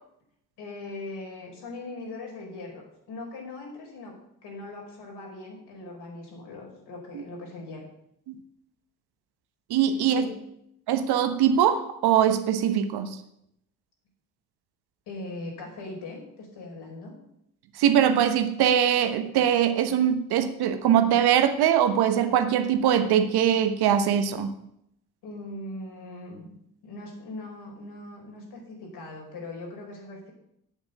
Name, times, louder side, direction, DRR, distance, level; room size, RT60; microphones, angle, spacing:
voice 1, 0.6-4.1 4.4-7.9 9.9-10.3 15.1-17.1 25.2-26.5 26.8-30.3, left 2 dB, 55° left, 0 dB, 5.0 m, -40 dB
voice 2, 9.7-10.3 10.9-13.2 17.8-24.5, right 9 dB, 55° right, 9 dB, 1.2 m, -22 dB
8.9 x 8.0 x 8.3 m, 0.76 s
figure-of-eight pair, 55°, 47 cm